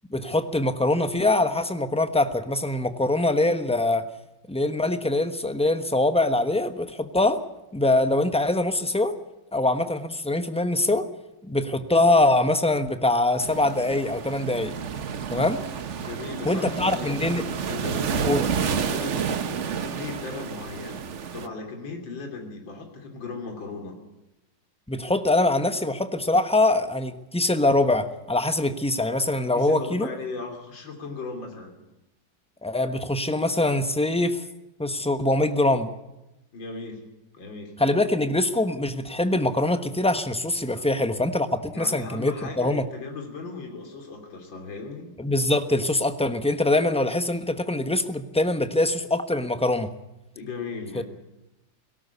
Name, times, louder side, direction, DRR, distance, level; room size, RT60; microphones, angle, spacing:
voice 1, 0.1-4.0 4.5-7.4 7.7-9.2 9.5-11.1 11.5-14.7 15.3-15.6 16.4-17.4 18.2-18.5 24.9-30.1 32.6-34.4 34.8-35.9 37.8-42.8 45.2-49.9 50.9-51.0, left 2 dB, 5° left, 9 dB, 0.7 m, -23 dB
sound 1, 13.4-21.5, right 6 dB, 45° right, 1.1 m, -30 dB
voice 2, 16.0-17.2 17.7-18.4 18.8-21.0 21.3-24.0 29.5-31.8 36.5-37.1 37.3-37.7 40.7-40.8 41.7-45.1 50.3-51.0, left 4 dB, 85° left, 3 dB, 3.7 m, -37 dB
18.0 x 17.5 x 8.3 m, 0.96 s
omnidirectional pair, 2.0 m